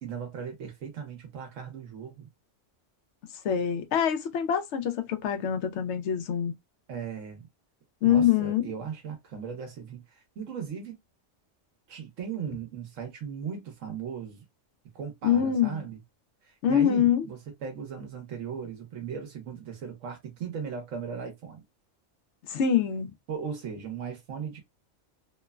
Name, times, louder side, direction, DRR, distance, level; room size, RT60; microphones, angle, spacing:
voice 1, 0.0-2.3 6.9-7.5 8.0-10.9 11.9-14.4 14.9-16.0 16.4-21.6 23.3-24.6, right 7 dB, 85° right, 1.2 m, -37 dB
voice 2, 3.4-6.5 8.0-8.6 15.2-15.9 16.6-17.3 22.4-23.1, left 9 dB, 70° left, 0.8 m, -25 dB
3.0 x 2.1 x 2.3 m
omnidirectional pair, 1.3 m